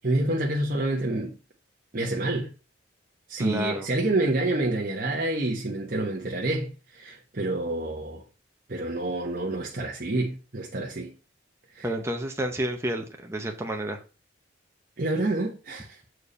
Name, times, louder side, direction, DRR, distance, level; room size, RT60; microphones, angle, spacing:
voice 1, 0.0-1.4 1.9-2.5 3.3-8.2 8.7-11.1 11.7-11.9 15.0-16.0, right 2 dB, 45° right, 1.1 m, -28 dB
voice 2, 3.4-3.9 11.8-14.0, right 1 dB, 15° right, 0.7 m, -30 dB
6.7 x 4.7 x 5.4 m
head